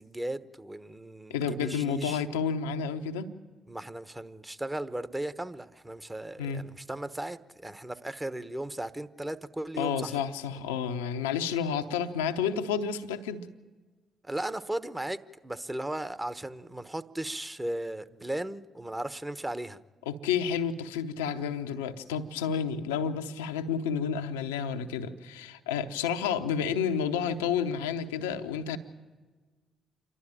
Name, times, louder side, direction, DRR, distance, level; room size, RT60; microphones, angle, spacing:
voice 1, 0.0-2.2 3.7-10.2 14.2-19.8, right 1 dB, 15° right, 1.1 m, -36 dB
voice 2, 1.3-3.3 6.4-6.6 9.8-13.5 20.1-28.8, left 7 dB, 90° left, 0.8 m, -30 dB
28.0 x 12.5 x 8.9 m
hypercardioid pair, 45°, 0 cm